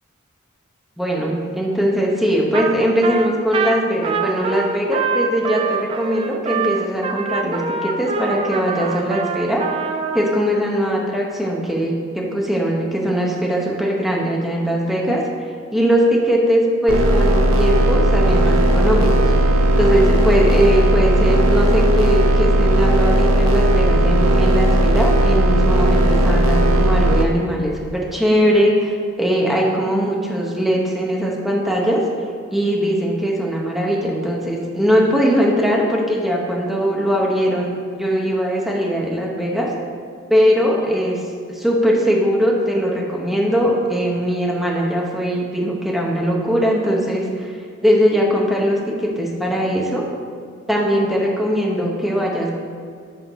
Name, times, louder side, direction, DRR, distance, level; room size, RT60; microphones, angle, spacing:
voice 1, 1.0-9.6 10.1-15.2 15.7-19.3 19.8-32.0 32.5-39.7 40.3-41.2 41.5-47.5 47.8-50.0 50.7-52.6, equal, ahead, -2 dB, 0.8 m, -20 dB
Trumpet, 2.5-2.8 3.0-10.4, right 5 dB, 25° right, 0.3 m, -25 dB
sound 1, 16.9-27.2, right 1 dB, 85° right, 0.7 m, -16 dB
6.0 x 4.4 x 5.5 m, 2.1 s
head